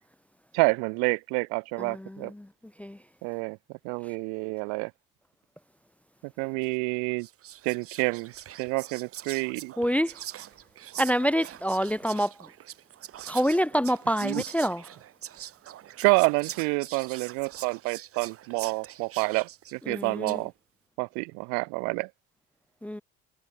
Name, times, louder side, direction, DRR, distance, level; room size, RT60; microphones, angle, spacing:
voice 1, 0.5-2.3 3.2-3.6 3.8-4.9 6.4-7.3 7.6-8.3 8.6-9.7 14.2-14.4 16.0-20.5 21.0-22.1, right 38 dB, 85° right, 0.8 m, -28 dB
voice 2, 1.8-2.5 2.8-3.0 9.8-10.1 11.0-12.3 13.3-14.8 19.9-20.4 22.8-23.0, equal, 5° left, 0.3 m, -27 dB
Whispering, 6.6-6.8 7.2-20.5, right 12 dB, 50° right, 1.4 m, -43 dB
supercardioid pair, 95°, 29 cm